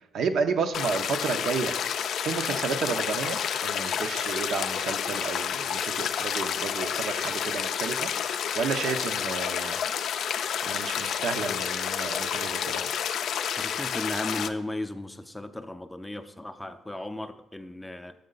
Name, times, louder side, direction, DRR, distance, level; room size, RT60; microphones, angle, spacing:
voice 1, 0.1-1.7 2.2-8.1 8.5-9.8 10.6-12.8, right 5 dB, 70° right, 7 dB, 0.6 m, -31 dB
sound 1, 0.7-14.5, left 8 dB, 70° left, 0.4 m, -30 dB
voice 2, 13.6-18.1, left 1 dB, 10° left, 9 dB, 0.5 m, -35 dB
6.6 x 6.4 x 3.9 m, 0.89 s
cardioid pair, 90°, 0 cm